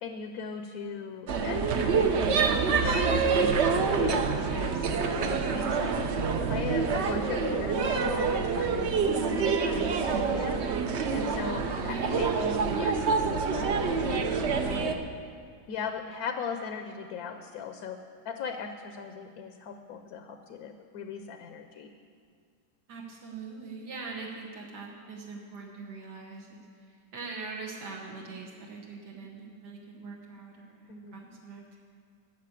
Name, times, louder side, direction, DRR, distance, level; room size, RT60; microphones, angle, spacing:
voice 1, 0.0-2.1 2.7-6.1 6.5-10.6 11.1-14.9 15.7-18.0 18.2-21.9 30.9-31.1, left 6 dB, 70° left, 7 dB, 1.1 m, -38 dB
sound 1, 1.3-14.9, right 5 dB, 55° right, 0.8 m, -27 dB
voice 2, 11.9-12.3 22.9-31.8, right 4 dB, 85° right, -1 dB, 1.8 m, -42 dB
13.5 x 6.5 x 8.4 m, 2.1 s
omnidirectional pair, 1.7 m